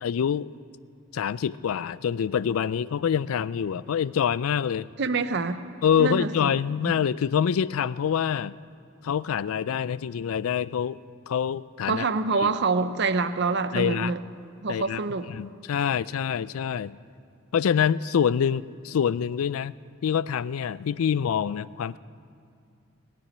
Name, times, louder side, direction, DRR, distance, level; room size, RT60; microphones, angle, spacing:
voice 1, 0.0-0.5 1.1-4.9 5.8-8.6 9.0-11.0 11.3-12.0 12.4-12.5 13.7-14.1 14.7-15.0 15.3-17.0 17.5-19.7 20.0-22.0, left 8 dB, 85° left, 19 dB, 0.4 m, -26 dB
voice 2, 5.0-5.6 6.0-6.6 6.8-6.9 11.9-14.2 14.6-15.3, right 4 dB, 55° right, 11 dB, 0.7 m, -26 dB
19.0 x 7.0 x 9.9 m, 2.3 s
head